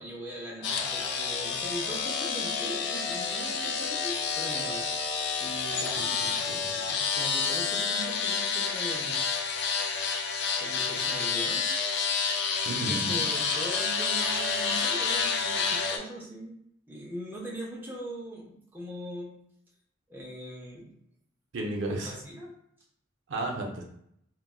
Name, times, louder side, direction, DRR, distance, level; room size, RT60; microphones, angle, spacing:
voice 1, 0.0-4.9 5.4-9.2 10.6-11.7 12.7-16.6 16.9-19.4 20.1-20.9 21.9-22.5, right 1 dB, 10° right, -3 dB, 0.5 m, -40 dB
sound 1, 0.6-16.0, left 5 dB, 55° left, 0.4 m, -29 dB
voice 2, 6.5-6.8 12.6-13.2 21.5-22.2 23.3-23.8, right 2 dB, 65° right, 0 dB, 0.5 m, -33 dB
3.8 x 2.1 x 2.2 m, 0.72 s
head